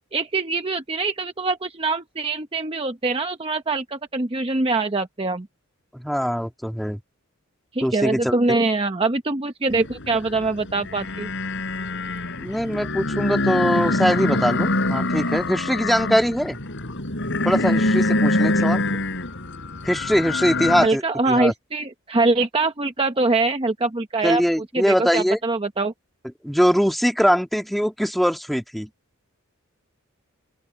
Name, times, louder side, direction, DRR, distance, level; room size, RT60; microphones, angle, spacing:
voice 1, 0.1-5.5 7.7-11.3 18.6-18.7 20.8-24.4 24.7-25.9, right 3 dB, 25° right, 0.8 m, -23 dB
voice 2, 5.9-7.0 7.8-8.4 12.4-16.6 17.4-18.8 19.8-21.5 24.2-25.4 26.4-28.9, equal, ahead, 2.0 m, -22 dB
sound 1, 9.7-20.9, left 2 dB, 55° left, 4.1 m, -25 dB
open air
head